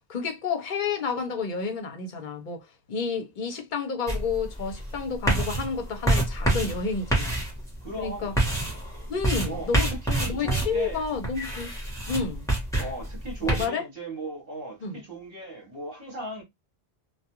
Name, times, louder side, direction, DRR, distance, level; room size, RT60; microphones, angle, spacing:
voice 1, 0.1-7.3 8.0-8.3 9.1-9.9 10.2-11.7 12.1-12.5 13.4-13.8 14.8-15.0, left 5 dB, 55° left, 0.8 m, -30 dB
sound 1, 4.1-13.7, right 1 dB, 5° left, 0.9 m, -28 dB
voice 2, 7.8-8.3 9.5-11.0 12.8-16.4, right 2 dB, 60° right, 1.2 m, -37 dB
2.3 x 2.3 x 2.8 m
omnidirectional pair, 1.1 m